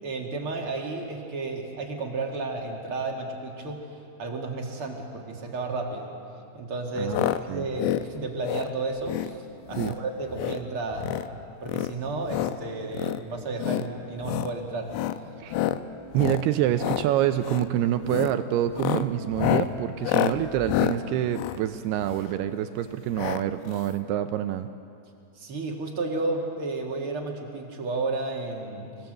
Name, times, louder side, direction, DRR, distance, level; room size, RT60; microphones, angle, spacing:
voice 1, 0.0-3.9 4.2-6.1 6.5-9.4 9.7-11.1 11.6-14.9 25.4-28.9, right 3 dB, 40° right, 0 dB, 2.2 m, -32 dB
voice 2, 7.0-7.7 9.8-9.9 15.4-15.6 16.1-24.7, right 12 dB, 80° right, 9 dB, 2.4 m, -27 dB
sound 1, 7.1-7.4 7.7-8.1 8.4-8.7 9.0-9.3 9.7-10.0 10.3-10.6 10.9-11.3 11.6-12.6 12.9-13.2 13.6-13.9 14.2-14.5 14.9-15.2 15.5-15.8 16.1-16.4 16.7-17.1 17.4-17.7 18.1-18.3 18.7-22.4 23.2-23.4 23.7-23.8 24.0-24.1, left 13 dB, 80° left, 2.7 m, -28 dB
26.5 x 18.0 x 7.9 m, 2.5 s
omnidirectional pair, 5.2 m